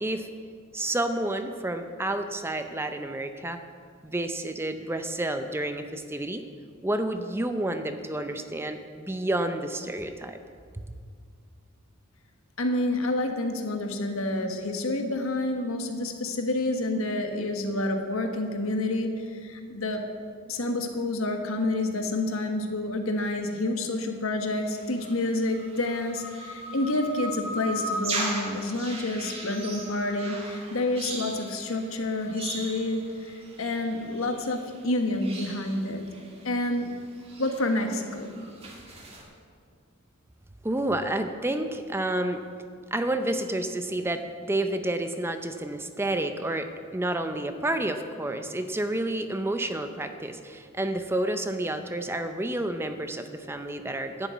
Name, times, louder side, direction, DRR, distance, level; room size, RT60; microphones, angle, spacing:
voice 1, 0.7-3.6 4.0-6.4 6.8-10.4 40.6-42.4 42.9-54.3, right 1 dB, 10° right, 7 dB, 0.5 m, -30 dB
voice 2, 12.6-20.0 20.5-36.0 36.4-36.9 37.4-38.4, left 2 dB, 75° left, 4 dB, 1.4 m, -28 dB
sound 1, 24.5-34.9 35.2-36.5 36.8-39.2, right 1 dB, 30° right, 2.0 m, -38 dB
11.5 x 7.0 x 9.3 m, 2.1 s
head